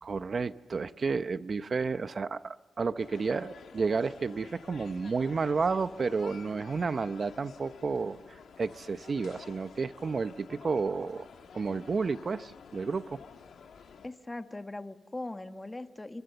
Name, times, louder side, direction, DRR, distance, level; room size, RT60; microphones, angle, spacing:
voice 1, 0.0-11.3 11.5-13.2, right 4 dB, 45° right, 13 dB, 0.8 m, -31 dB
sound 1, 3.0-14.1, left 6 dB, 80° left, 2.8 m, -51 dB
voice 2, 14.0-16.2, left 2 dB, 20° left, 8 dB, 1.5 m, -40 dB
30.0 x 24.5 x 6.9 m, 1.3 s
cardioid pair, 90°, 0 cm